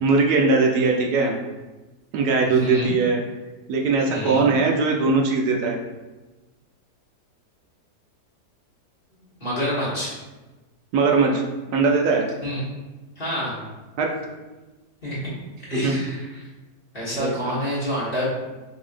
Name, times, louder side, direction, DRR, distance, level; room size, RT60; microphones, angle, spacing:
voice 1, 0.0-1.4 2.1-3.2 3.7-5.8 10.9-11.4 11.7-12.3 14.0-14.3 15.7-15.9 17.1-17.5, right 4 dB, 80° right, 1 dB, 1.1 m, -20 dB
voice 2, 2.4-2.9 4.1-4.4 9.4-10.1 12.4-12.6 13.2-13.6 15.0-15.2 15.7-16.3 16.9-18.3, equal, 35° left, -8 dB, 1.5 m, -27 dB
5.4 x 2.7 x 2.5 m, 1.1 s
omnidirectional pair, 1.7 m